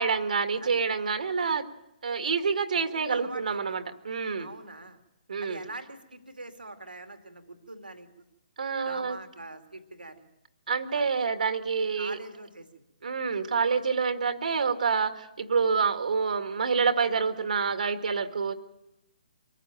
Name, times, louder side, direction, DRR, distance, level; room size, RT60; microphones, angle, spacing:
voice 1, 0.0-1.6 2.0-4.5 5.3-5.6 8.6-9.2 10.7-12.2 13.0-18.5, right 5 dB, 60° right, 8 dB, 1.9 m, -27 dB
voice 2, 2.9-3.8 4.4-5.0 5.4-8.2 8.8-10.3 10.9-11.0 12.0-12.8, right 2 dB, 85° right, 6 dB, 2.5 m, -43 dB
24.5 x 15.0 x 9.0 m, 0.93 s
figure-of-eight pair, 135°, 5 cm